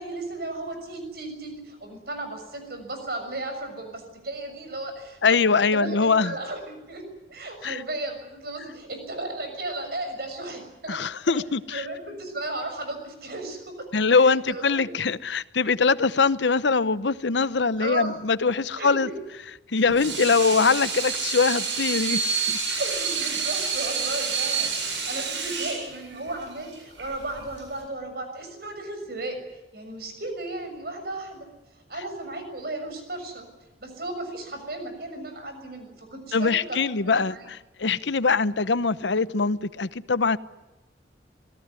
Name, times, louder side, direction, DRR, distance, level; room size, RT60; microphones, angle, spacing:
voice 1, 0.0-5.4 5.7-11.0 11.3-11.4 11.7-13.9 14.1-14.9 15.8-15.9 17.8-18.1 18.7-19.1 19.7-19.8 22.8-31.5 31.9-33.4 33.8-37.5, right 2 dB, 55° right, 6.6 m, -35 dB
voice 2, 5.2-6.3 7.6-7.8 10.9-11.8 13.9-19.1 19.7-22.2 22.5-22.6 36.3-40.4, left 4 dB, 75° left, 0.8 m, -22 dB
Water tap faucet / Sink (filling or washing), 19.8-27.8, right 5 dB, 75° right, 7.8 m, -29 dB
26.0 x 18.0 x 9.7 m
head